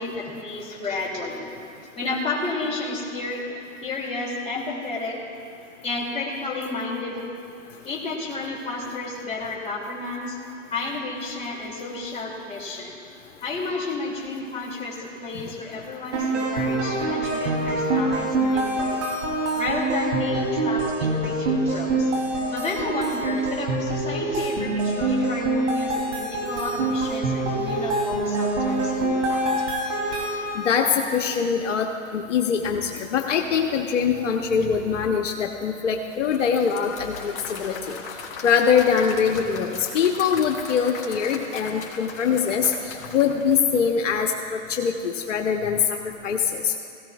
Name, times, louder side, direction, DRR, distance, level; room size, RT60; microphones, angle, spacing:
voice 1, 0.0-1.5 1.9-5.2 5.8-7.3 7.8-10.4 10.7-13.0 13.4-19.0 19.5-22.1 22.5-29.4, left 3 dB, 15° left, -4 dB, 2.6 m, -31 dB
sound 1, 16.1-30.8, right 2 dB, 65° right, 3.1 m, -25 dB
voice 2, 30.5-38.0 38.4-46.0 46.2-46.7, left 7 dB, 65° left, 3 dB, 1.0 m, -23 dB
Applause / Crowd, 36.1-44.3, left 4 dB, 45° left, 2.8 m, -39 dB
17.5 x 16.0 x 2.4 m, 2.5 s
hypercardioid pair, 130°, 39 cm